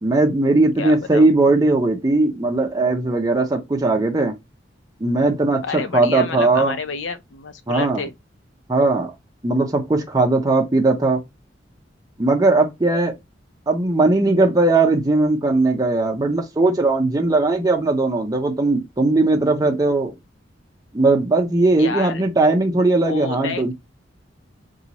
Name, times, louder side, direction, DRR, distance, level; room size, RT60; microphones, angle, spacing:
voice 1, 0.0-4.3 5.0-6.7 7.7-8.0 8.7-9.1 9.4-11.2 12.2-13.2 13.7-20.1 20.9-23.7, right 2 dB, 20° right, 0.6 m, -18 dB
voice 2, 0.8-1.3 5.6-8.1 21.8-22.2 23.0-23.7, left 5 dB, 85° left, 0.6 m, -29 dB
2.9 x 2.3 x 4.0 m
head